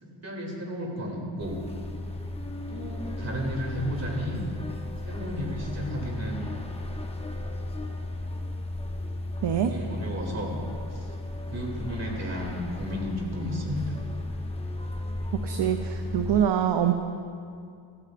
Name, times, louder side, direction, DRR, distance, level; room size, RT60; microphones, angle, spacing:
voice 1, 0.0-1.6 2.7-4.4 5.0-6.4 9.7-10.6 10.9-11.1 11.5-14.0, equal, 30° right, -2 dB, 2.9 m, -33 dB
sound 1, 1.4-16.4, left 1 dB, 10° left, 0.8 m, -35 dB
voice 2, 15.4-16.9, right 9 dB, 60° right, 6 dB, 0.6 m, -24 dB
15.0 x 14.0 x 2.5 m, 2.3 s
cardioid pair, 85°, 49 cm